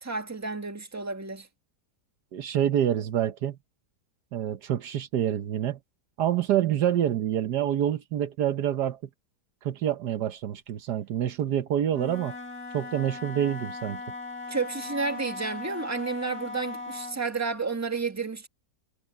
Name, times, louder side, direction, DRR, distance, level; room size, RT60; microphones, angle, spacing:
voice 1, 0.0-1.5 14.5-18.5, right 4 dB, 10° right, 1.6 m, -31 dB
voice 2, 2.3-3.6 4.3-5.8 6.2-9.0 9.6-12.3 12.7-14.0, right 10 dB, 75° right, 1.5 m, -27 dB
Wind instrument woodwind instrument, 11.9-17.3, left 3 dB, 60° left, 7.4 m, -39 dB
omnidirectional pair, 1.8 m